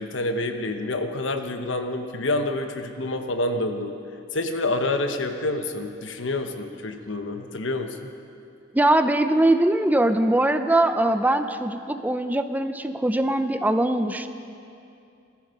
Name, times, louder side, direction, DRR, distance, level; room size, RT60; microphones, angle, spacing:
voice 1, 0.0-3.9 4.3-8.1, left 2 dB, 80° left, 6 dB, 1.1 m, -28 dB
voice 2, 8.7-14.3, right 1 dB, 10° right, 9 dB, 0.5 m, -21 dB
18.0 x 14.5 x 5.3 m, 2.6 s
head